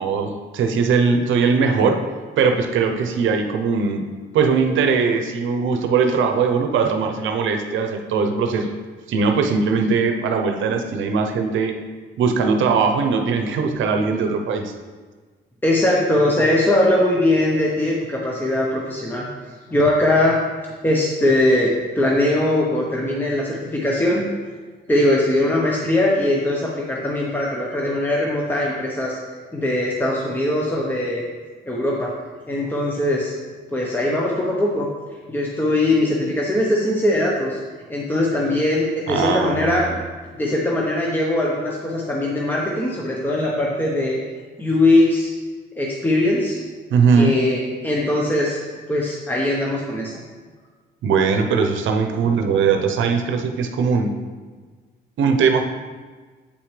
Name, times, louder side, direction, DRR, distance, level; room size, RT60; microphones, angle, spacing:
voice 1, 0.0-2.1 2.4-4.1 4.3-8.7 9.1-11.7 12.2-14.7 39.1-39.9 46.9-47.4 51.0-54.1 55.2-55.7, right 5 dB, 75° right, 5 dB, 0.8 m, -20 dB
voice 2, 15.6-19.3 19.7-20.4 20.8-24.2 24.9-29.2 29.5-31.2 31.7-32.1 32.5-33.3 33.7-34.9 35.3-37.6 37.9-39.9 40.3-44.2 44.6-45.3 45.8-46.6 47.2-48.6 48.9-50.2, left 1 dB, 10° left, -3 dB, 0.9 m, -20 dB
8.3 x 5.7 x 3.3 m, 1.4 s
cardioid pair, 90°, 20 cm